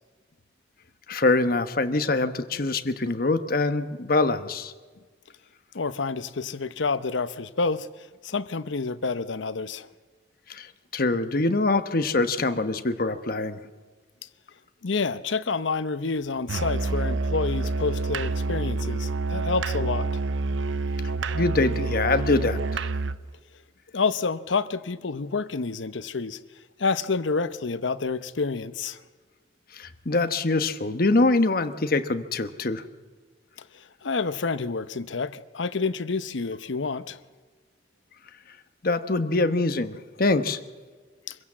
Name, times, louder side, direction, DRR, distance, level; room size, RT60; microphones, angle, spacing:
voice 1, 1.1-4.7 10.5-13.6 21.3-22.8 29.7-32.8 38.8-40.6, left 2 dB, 50° left, 1.1 m, -24 dB
voice 2, 5.7-7.9 8.2-9.9 14.8-20.1 23.9-26.4 26.8-29.0 33.7-37.2 41.3-41.4, left 4 dB, 85° left, 0.8 m, -28 dB
Musical instrument, 16.5-23.2, right 3 dB, 90° right, 0.6 m, -28 dB
25.0 x 16.0 x 7.4 m
head